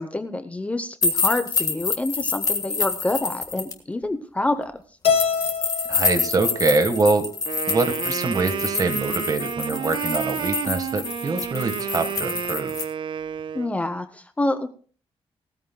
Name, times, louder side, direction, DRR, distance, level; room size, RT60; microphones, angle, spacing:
voice 1, 0.0-4.7 13.5-14.7, left 2 dB, 15° left, 9 dB, 0.7 m, -27 dB
sound 1, 1.0-3.7 5.2-12.8, left 5 dB, 35° left, 1.7 m, -27 dB
Keyboard (musical), 5.0-7.4, left 6 dB, 70° left, 1.1 m, -26 dB
voice 2, 5.9-7.3 7.7-12.8, right 3 dB, 35° right, 9 dB, 1.4 m, -24 dB
Wind instrument woodwind instrument, 7.5-13.7, right 8 dB, 55° right, 0.5 m, -30 dB
19.0 x 13.5 x 2.2 m, 0.40 s
wide cardioid pair, 165°, 10 cm